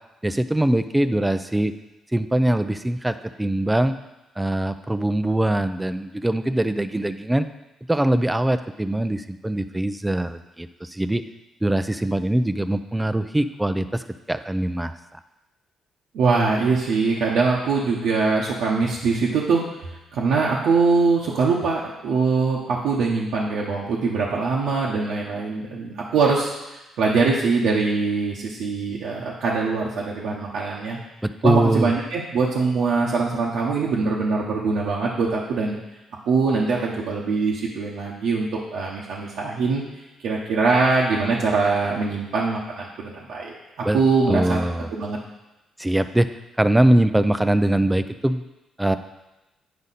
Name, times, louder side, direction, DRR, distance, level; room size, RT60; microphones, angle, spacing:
voice 1, 0.2-1.7 2.1-4.0 4.4-7.5 7.9-11.2 11.6-14.9 31.2-31.9 43.8-44.0 44.3-44.9 45.8-46.3 46.6-48.4 48.8-49.0, right 1 dB, 10° right, 11 dB, 0.5 m, -22 dB
voice 2, 16.1-31.0 31.4-35.8 36.2-43.5 43.9-44.6 44.9-45.2, right 4 dB, 80° right, -5 dB, 1.1 m, -23 dB
9.5 x 5.3 x 4.2 m, 1.0 s
cardioid pair, 90°, 0 cm